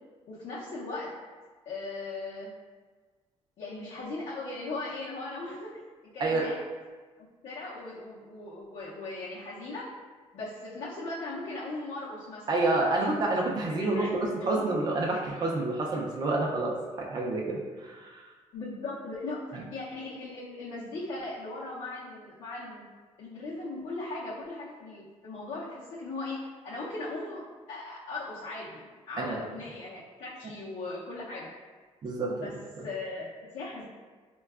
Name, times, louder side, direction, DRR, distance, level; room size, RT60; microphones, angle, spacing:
voice 1, 0.3-1.1 1.7-2.5 3.6-5.8 6.1-6.6 7.2-9.9 10.3-12.6 12.9-13.1 13.7-14.6 18.5-22.9 23.2-31.5 32.3-33.8, left 2 dB, 65° left, -8 dB, 0.6 m, -38 dB
voice 2, 12.5-18.2 29.2-29.4 32.0-32.5 32.8-32.9, right 2 dB, 35° right, -1 dB, 0.4 m, -28 dB
4.5 x 2.2 x 2.3 m, 1.4 s
cardioid pair, 135°, 12 cm